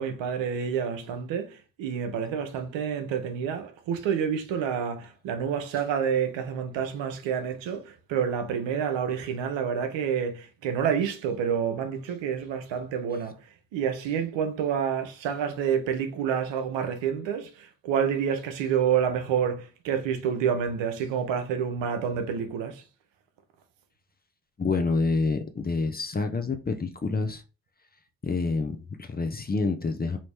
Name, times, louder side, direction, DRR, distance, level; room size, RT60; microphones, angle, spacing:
voice 1, 0.0-13.4 13.7-22.8, right 7 dB, 65° right, 0.8 m, -28 dB
voice 2, 24.6-27.4 28.2-30.2, left 3 dB, 20° left, 0.6 m, -27 dB
3.0 x 2.7 x 3.4 m
hypercardioid pair, 45°, 47 cm